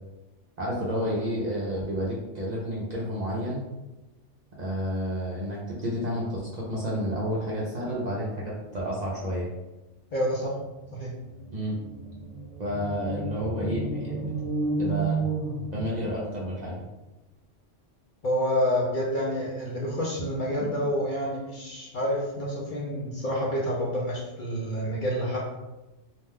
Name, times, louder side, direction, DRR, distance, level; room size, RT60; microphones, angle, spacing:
voice 1, 0.6-3.6 4.6-9.5 11.5-11.8 12.6-14.3 14.8-15.2 15.7-16.8, equal, 50° right, -6 dB, 0.5 m, -30 dB
voice 2, 10.1-10.5 10.9-11.1 18.2-25.4, equal, 55° left, -4 dB, 0.6 m, -28 dB
sound 1, 10.9-11.0 11.2-16.3, right 3 dB, 75° left, 1.2 m, -31 dB
2.5 x 2.2 x 3.3 m, 1.0 s
omnidirectional pair, 1.2 m